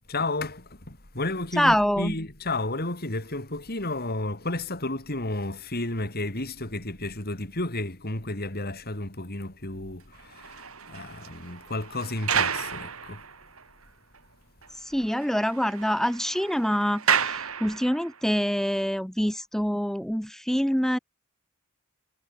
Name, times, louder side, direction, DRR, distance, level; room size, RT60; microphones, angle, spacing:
voice 1, 0.1-13.2, left 2 dB, 45° left, 4.3 m, -32 dB
voice 2, 1.6-2.1 14.9-21.0, equal, ahead, 1.5 m, -25 dB
sound 1, 10.1-13.6 14.1-14.2 14.6-14.7 15.0-18.2, right 7 dB, 70° right, 5.2 m, -31 dB
head